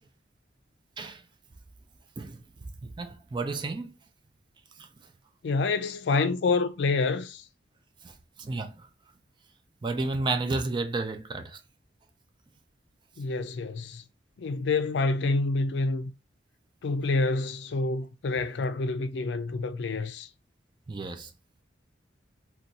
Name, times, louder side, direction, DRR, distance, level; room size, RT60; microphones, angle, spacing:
voice 1, 2.8-4.0 4.8-4.9 8.0-8.9 9.8-11.6 20.9-21.3, right 3 dB, 25° right, 0.3 m, -32 dB
voice 2, 5.4-7.4 13.2-14.0 14.4-16.1 16.8-20.3, left 3 dB, 70° left, 0.4 m, -27 dB
2.6 x 2.3 x 4.0 m
head